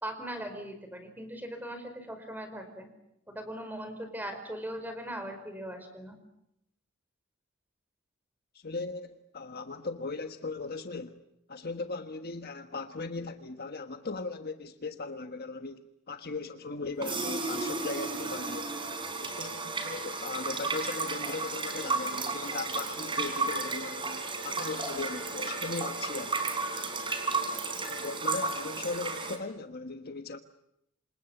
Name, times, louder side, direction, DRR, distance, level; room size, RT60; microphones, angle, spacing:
voice 1, 0.0-2.9 3.3-6.2, right 1 dB, 10° right, 4.9 m, -39 dB
voice 2, 8.5-11.2 11.5-18.7 19.2-26.4 27.9-30.4, left 3 dB, 50° left, 1.4 m, -38 dB
sound 1, 17.0-29.4, right 3 dB, 25° right, 3.9 m, -33 dB
27.5 x 27.5 x 7.2 m
head